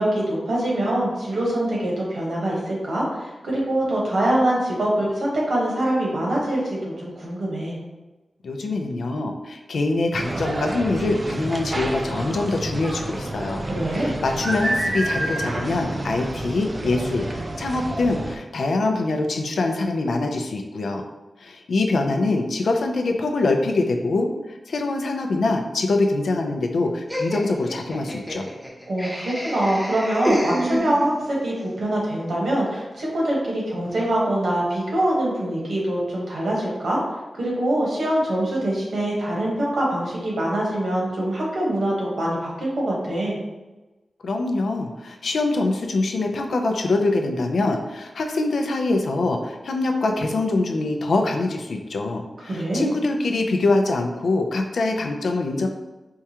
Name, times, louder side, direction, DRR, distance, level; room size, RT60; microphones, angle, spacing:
voice 1, 0.0-7.8 13.6-14.2 28.9-37.0 37.4-43.4 52.4-52.9, right 1 dB, 80° right, -4 dB, 1.1 m, -24 dB
voice 2, 8.4-13.6 13.9-21.0 21.4-24.3 24.7-28.5 44.2-55.7, left 2 dB, 85° left, 4 dB, 0.4 m, -24 dB
sound 1, 10.1-18.4, right 1 dB, 30° right, 0.3 m, -29 dB
Laughter, 27.1-31.3, equal, ahead, 0.7 m, -28 dB
4.5 x 2.3 x 2.8 m, 1.1 s
wide cardioid pair, 145°, 0 cm